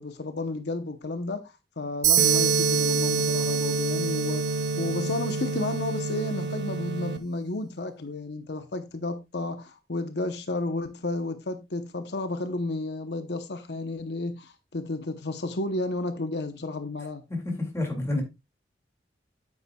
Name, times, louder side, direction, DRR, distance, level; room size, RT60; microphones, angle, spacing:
voice 1, 0.0-17.2, left 2 dB, 75° left, 0.9 m, -32 dB
sound 1, 2.0-5.8, right 10 dB, 45° right, 1.2 m, -27 dB
sound 2, 2.2-7.2, right 2 dB, 70° right, 0.9 m, -28 dB
voice 2, 17.3-18.2, left 2 dB, 15° left, 2.3 m, -29 dB
9.5 x 8.3 x 2.3 m
head